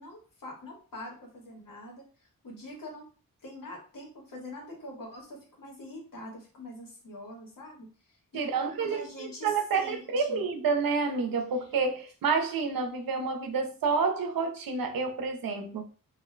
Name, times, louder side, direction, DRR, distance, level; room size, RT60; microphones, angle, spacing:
voice 1, 0.0-3.0 3.4-10.4, left 1 dB, 75° left, 1.3 m, -44 dB
voice 2, 8.3-15.8, right 4 dB, 85° right, 0.6 m, -29 dB
2.7 x 2.1 x 3.7 m
wide cardioid pair, 135°, 34 cm